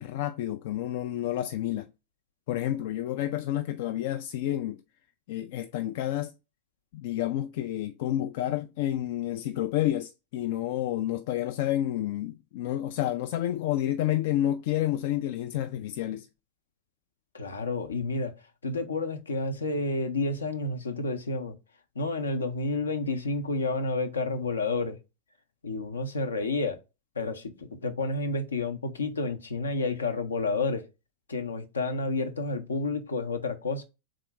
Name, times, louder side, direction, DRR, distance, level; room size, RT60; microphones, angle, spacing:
voice 1, 0.0-1.9 2.5-4.8 5.3-6.3 6.9-16.3, left 13 dB, 50° left, 0.3 m, -29 dB
voice 2, 17.3-18.3 18.6-21.6 21.9-25.0 25.6-26.8 27.2-30.8 31.3-33.8, left 3 dB, 75° left, 0.7 m, -30 dB
3.7 x 2.8 x 4.5 m
figure-of-eight pair, 90°, 0 cm